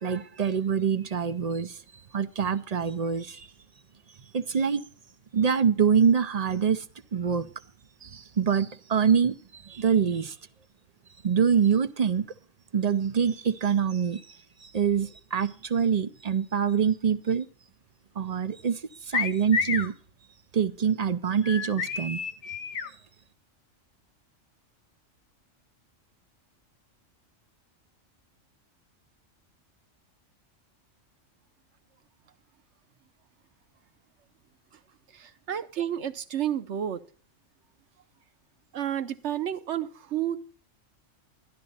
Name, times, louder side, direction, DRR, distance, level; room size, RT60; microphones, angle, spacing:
voice 1, 0.0-1.8 2.1-3.5 4.3-4.8 5.3-6.8 7.1-7.5 8.0-10.4 11.2-12.3 12.7-17.5 18.2-18.8 19.1-19.9 20.5-22.2, right 7 dB, 45° right, 0.5 m, -25 dB
sound 1, 19.1-19.9 21.4-22.9, left 5 dB, 60° left, 1.1 m, -30 dB
voice 2, 35.1-37.0 38.7-40.4, right 10 dB, 65° right, 1.1 m, -31 dB
12.0 x 11.5 x 4.1 m
omnidirectional pair, 1.3 m